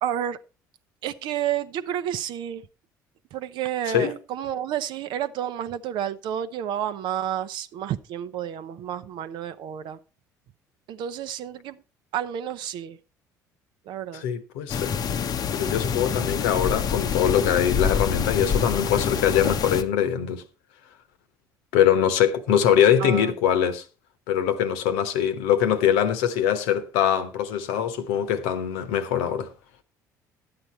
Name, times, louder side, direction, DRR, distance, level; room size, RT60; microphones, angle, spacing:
voice 1, 0.0-0.4 1.0-2.7 3.3-10.0 10.9-11.8 12.1-13.0 13.9-14.2 16.1-16.2 23.0-23.6, right 10 dB, 55° right, 0.7 m, -30 dB
voice 2, 14.1-14.9 15.5-20.4 21.7-23.8 24.3-29.5, left 9 dB, 65° left, 1.0 m, -22 dB
sound 1, 14.7-19.8, left 7 dB, 40° left, 0.8 m, -26 dB
11.5 x 8.8 x 4.3 m
figure-of-eight pair, 55°, 10 cm